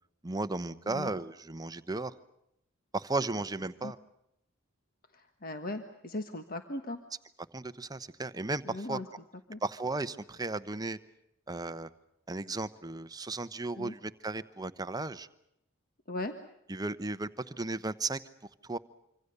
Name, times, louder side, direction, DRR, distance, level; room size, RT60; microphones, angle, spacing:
voice 1, 0.2-2.1 2.9-4.0 7.5-9.0 9.6-11.0 11.5-11.9 12.3-15.3 16.7-18.2 18.6-18.8, right 2 dB, 20° right, 11 dB, 0.9 m, -35 dB
voice 2, 5.1-7.0 8.7-9.1 9.5-9.6 13.7-13.9 16.1-16.3, left 2 dB, 45° left, 7 dB, 1.4 m, -38 dB
26.0 x 25.5 x 6.8 m, 0.79 s
head